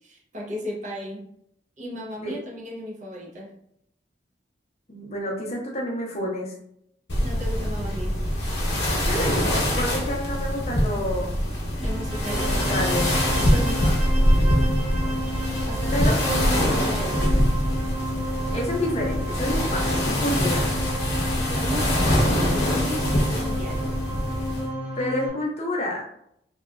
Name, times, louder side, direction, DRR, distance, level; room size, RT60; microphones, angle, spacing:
voice 1, 0.0-1.3 1.8-3.5 7.2-8.2 11.8-12.6 15.7-17.5 21.3-24.1, equal, 45° right, -1 dB, 0.5 m, -34 dB
voice 2, 4.9-6.5 9.0-11.4 12.2-14.0 15.9-16.2 18.5-20.7 25.0-26.1, left 1 dB, 35° left, -1 dB, 0.5 m, -29 dB
sound 1, 7.1-24.7, equal, 70° left, 0.7 m, -24 dB
sound 2, 11.7-25.3, equal, 30° right, 0.9 m, -32 dB
2.7 x 2.2 x 2.2 m, 0.72 s
head